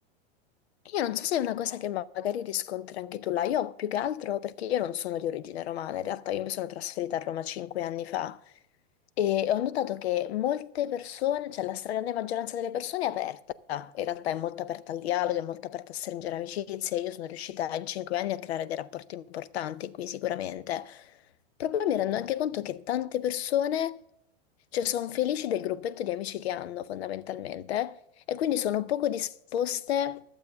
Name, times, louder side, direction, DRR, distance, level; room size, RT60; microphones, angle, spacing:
voice 1, 0.8-8.4 9.2-13.4 13.7-21.1 21.6-24.0 24.7-28.0 28.3-30.2, left 11 dB, 80° left, 0.7 m, -31 dB
12.0 x 7.2 x 6.5 m
hypercardioid pair, 125°, 31 cm